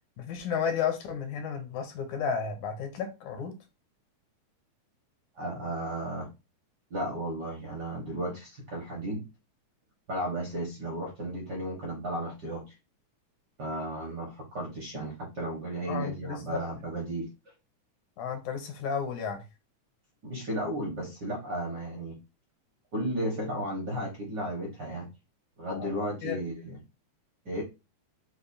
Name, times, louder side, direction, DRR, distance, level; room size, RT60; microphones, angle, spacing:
voice 1, 0.2-3.6 15.9-16.6 18.2-19.4 25.8-26.4, left 7 dB, 80° left, 2.3 m, -33 dB
voice 2, 5.3-6.3 6.9-9.3 10.1-12.7 13.6-17.3 20.2-22.2 22.9-25.1 25.6-26.8 27.4-27.6, right 1 dB, 55° right, 1.2 m, -34 dB
6.7 x 2.3 x 2.6 m
omnidirectional pair, 3.4 m